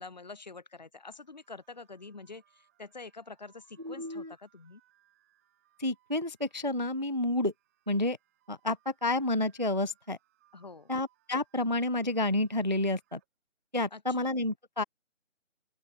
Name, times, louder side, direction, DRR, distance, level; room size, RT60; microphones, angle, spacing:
voice 1, 0.0-4.8 10.5-10.9 13.9-14.3, left 3 dB, 35° left, 1.8 m, -47 dB
sound 1, 1.1-13.3, right 13 dB, 10° right, 6.0 m, -71 dB
voice 2, 3.8-4.3 5.8-7.5 7.9-8.2 8.5-10.2 10.9-13.2 13.7-14.8, left 2 dB, 40° right, 0.4 m, -30 dB
open air
figure-of-eight pair, 175°, 37 cm